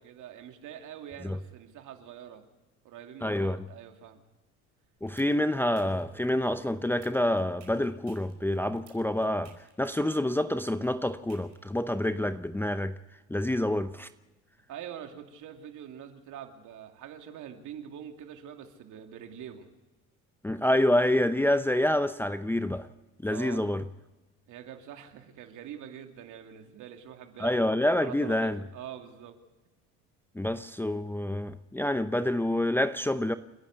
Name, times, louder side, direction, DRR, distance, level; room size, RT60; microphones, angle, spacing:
voice 1, 0.0-2.5 2.8-4.2 14.7-19.7 23.2-23.6 24.5-27.6 28.0-29.4, right 9 dB, 60° right, 2.8 m, -44 dB
voice 2, 3.2-3.6 5.0-13.0 13.3-14.1 20.4-22.9 23.2-23.8 27.4-28.6 30.3-33.3, left 1 dB, 5° left, 0.7 m, -27 dB
sound 1, 4.8-12.1, right 8 dB, 85° right, 5.3 m, -57 dB
29.5 x 10.5 x 8.3 m
hypercardioid pair, 75°, 35 cm